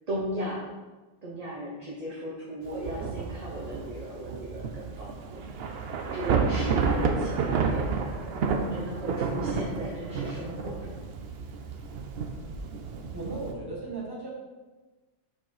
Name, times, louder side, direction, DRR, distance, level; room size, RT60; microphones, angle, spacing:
voice 1, 0.1-0.7 1.2-5.5 6.1-8.3 8.7-11.2, right 1 dB, 35° right, -4 dB, 1.0 m, -36 dB
Thunder / Rain, 2.6-13.5, right 5 dB, 65° right, 0.8 m, -30 dB
voice 2, 13.1-14.3, right 3 dB, 20° right, -4 dB, 1.6 m, -36 dB
6.4 x 3.9 x 4.8 m, 1.2 s
omnidirectional pair, 1.1 m